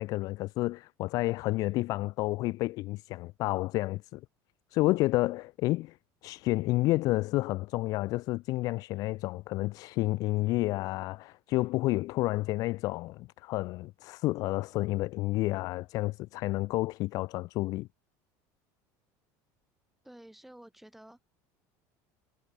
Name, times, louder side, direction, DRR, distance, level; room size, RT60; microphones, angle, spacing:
voice 1, 0.0-4.2 4.7-6.0 6.2-17.9, left 19 dB, 50° left, 0.7 m, -30 dB
voice 2, 20.0-21.3, right 1 dB, ahead, 7.7 m, -51 dB
cardioid pair, 165°, 8 cm